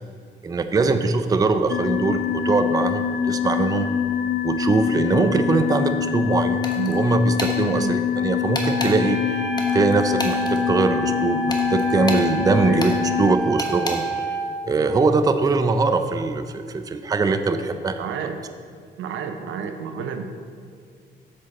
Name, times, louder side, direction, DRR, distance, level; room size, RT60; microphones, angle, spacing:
voice 1, 0.4-3.9 4.4-12.9 13.2-14.4 14.6-18.0, right 3 dB, 20° right, 9 dB, 0.4 m, -22 dB
sound 1, 1.7-13.3, left 8 dB, 55° left, 0.5 m, -24 dB
sound 2, 6.6-7.0 7.4-7.6 8.5-8.9 9.6-10.6 11.5-12.3 12.8-13.0 13.6-14.0, left 1 dB, 20° left, 1.1 m, -30 dB
Wind instrument woodwind instrument, 8.6-14.6, right 3 dB, 35° right, 1.0 m, -29 dB
voice 2, 18.0-18.4 19.0-20.3, right 7 dB, 80° right, 7 dB, 0.7 m, -30 dB
7.4 x 6.5 x 4.1 m, 2.2 s
cardioid pair, 90°, 20 cm